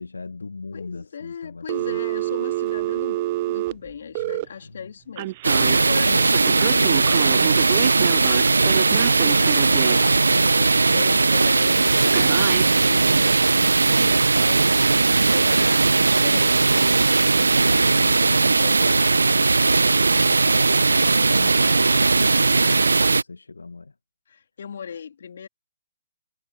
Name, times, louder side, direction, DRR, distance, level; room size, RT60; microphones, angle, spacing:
voice 1, 0.0-2.0 4.2-4.3 4.6-4.9 5.6-5.8 10.9-11.2 20.1-23.9, left 3 dB, 80° left, 1.3 m, -39 dB
voice 2, 0.7-8.8 9.1-10.3 10.6-17.0 17.4-19.1 24.3-25.5, left 7 dB, 60° left, 2.9 m, -38 dB
Telephone, 1.7-4.4 5.2-5.8 6.3-10.1 12.1-12.7, right 18 dB, 40° right, 0.4 m, -27 dB
sound 1, 5.4-23.2, right 3 dB, 80° right, 0.8 m, -18 dB
figure-of-eight pair, 125°, 0 cm